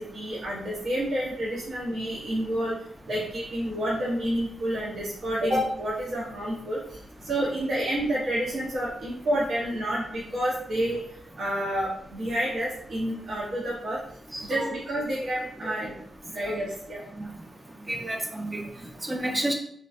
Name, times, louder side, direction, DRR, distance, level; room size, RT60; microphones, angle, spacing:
voice 1, 0.0-2.7 3.1-6.8 7.2-11.0 11.4-14.0 14.4-16.0 16.3-17.0, right 1 dB, 65° right, -7 dB, 0.7 m, -29 dB
voice 2, 14.3-14.7 15.6-15.9 17.9-18.6 19.0-19.5, right 1 dB, 25° right, 2 dB, 0.4 m, -30 dB
2.5 x 2.2 x 2.3 m, 0.66 s
cardioid pair, 60°, 0 cm